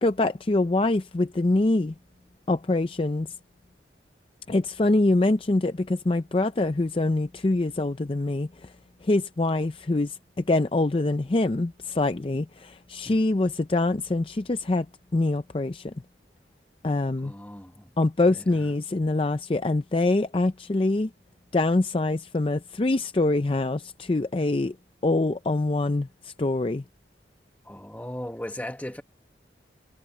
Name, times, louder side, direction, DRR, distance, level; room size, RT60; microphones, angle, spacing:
voice 1, 0.0-1.9 2.5-3.3 4.5-8.7 9.0-14.9 15.1-15.9 16.8-17.3 18.0-21.1 21.5-24.8 25.0-26.8, left 2 dB, 30° left, 0.5 m, -24 dB
voice 2, 17.2-17.9 18.3-18.7 27.6-29.0, left 1 dB, 10° left, 1.0 m, -37 dB
head